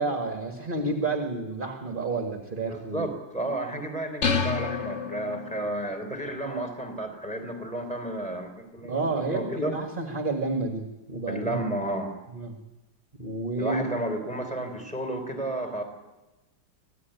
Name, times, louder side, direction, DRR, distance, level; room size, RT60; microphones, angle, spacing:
voice 1, 0.0-3.1 8.8-11.6 12.3-12.6 13.2-13.9, right 3 dB, 30° right, 5 dB, 1.6 m, -30 dB
voice 2, 2.7-9.7 11.3-12.1 13.6-15.8, right 1 dB, 5° left, 4 dB, 3.7 m, -32 dB
sound 1, 4.2-5.8, left 5 dB, 40° left, 1.5 m, -29 dB
24.0 x 16.0 x 9.2 m, 1.1 s
omnidirectional pair, 2.0 m